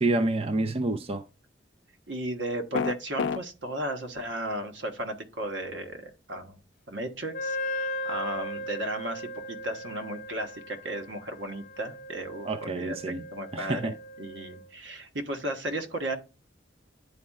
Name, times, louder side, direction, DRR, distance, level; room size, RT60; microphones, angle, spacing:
voice 1, 0.0-1.2 12.5-13.2 13.5-13.9, right 2 dB, 35° right, 0.4 m, -28 dB
voice 2, 2.1-6.6 6.9-16.2, right 1 dB, 80° right, 1.3 m, -35 dB
sound 1, 2.7-3.4, left 5 dB, 85° left, 0.4 m, -27 dB
Wind instrument woodwind instrument, 7.3-14.7, left 1 dB, 50° left, 0.8 m, -37 dB
10.5 x 4.2 x 2.3 m
head